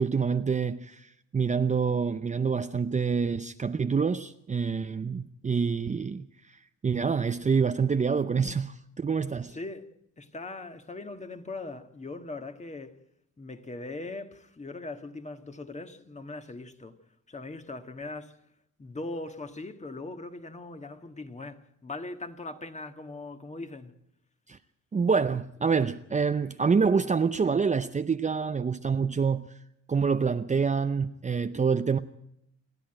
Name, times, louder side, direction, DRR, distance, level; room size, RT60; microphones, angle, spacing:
voice 1, 0.0-6.6 6.8-9.6 24.5-24.6 24.9-29.5 29.9-32.0, right 5 dB, 25° right, 0.7 m, -27 dB
voice 2, 9.5-13.0 13.4-17.0 17.3-18.4 18.8-23.9, left 2 dB, 25° left, 1.8 m, -40 dB
27.5 x 11.0 x 9.1 m
cardioid pair, 90°, 30 cm